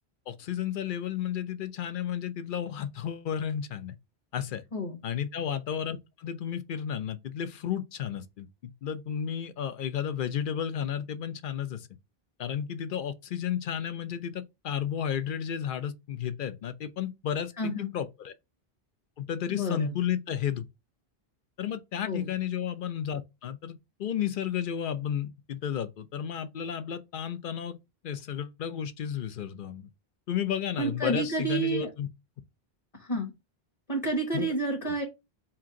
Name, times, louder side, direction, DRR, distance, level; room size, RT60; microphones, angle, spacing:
voice 1, 0.3-4.0 4.3-4.6 5.0-11.9 12.4-18.3 19.2-20.6 21.6-27.8 28.0-29.9 30.3-32.1 34.3-34.5 34.9-35.0, left 9 dB, 60° left, 0.7 m, -33 dB
voice 2, 17.6-17.9 19.5-19.9 22.1-22.3 30.8-31.9 33.0-33.3 33.9-35.0, right 2 dB, 35° left, 1.1 m, -30 dB
4.4 x 2.5 x 3.6 m
omnidirectional pair, 1.0 m